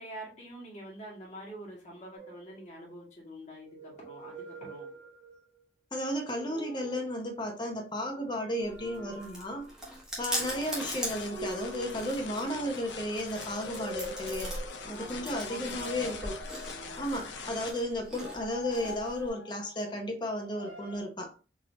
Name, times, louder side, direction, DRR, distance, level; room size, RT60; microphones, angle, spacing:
voice 1, 0.0-4.9 10.4-10.7 14.9-16.4 16.6-17.1, right 1 dB, 40° left, 1.6 m, -46 dB
sound 1, 2.2-3.1 3.6-5.6 6.2-7.2 8.5-9.9 11.1-12.8 13.3-15.0 15.6-17.2 18.1-19.9 20.4-21.0, left 1 dB, 65° right, 1.0 m, -45 dB
voice 2, 5.9-9.7 10.2-14.6 14.8-16.4 17.0-21.3, equal, 25° left, 0.7 m, -34 dB
Chewing mastication, 8.6-19.3, equal, 5° right, 0.9 m, -41 dB
sound 2, 10.4-17.7, left 4 dB, 75° left, 0.5 m, -43 dB
3.9 x 2.7 x 2.7 m
head